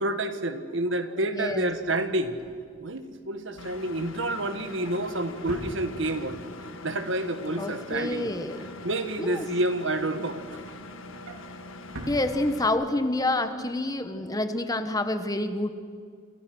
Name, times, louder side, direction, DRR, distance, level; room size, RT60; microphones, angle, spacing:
voice 1, 0.0-2.4 2.8-6.4 6.8-8.3 8.8-10.6, right 1 dB, 60° right, 9 dB, 1.6 m, -29 dB
voice 2, 1.2-1.7 7.6-8.7 9.2-9.5 12.1-15.7, left 2 dB, 15° left, 9 dB, 1.2 m, -28 dB
Drawer open or close, 1.4-6.4 6.8-7.1 7.4-9.6 10.0-13.0 13.4-13.6 13.8-13.9, right 1 dB, 85° right, 3.6 m, -46 dB
Engine, 3.6-12.7, left 2 dB, 70° left, 1.8 m, -43 dB
28.0 x 27.5 x 6.3 m, 2.1 s
head